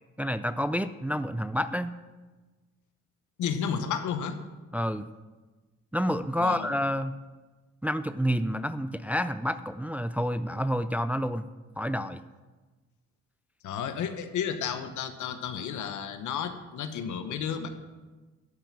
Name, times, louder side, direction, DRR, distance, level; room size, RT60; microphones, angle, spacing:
voice 1, 0.2-1.9 4.7-5.1 5.9-7.1 7.8-11.5 11.8-12.2, equal, 5° right, 12 dB, 0.4 m, -29 dB
voice 2, 3.4-4.4 6.4-6.7 13.6-17.7, left 7 dB, 75° left, 8 dB, 1.2 m, -32 dB
12.0 x 5.9 x 7.3 m, 1.2 s
cardioid pair, 90°, 30 cm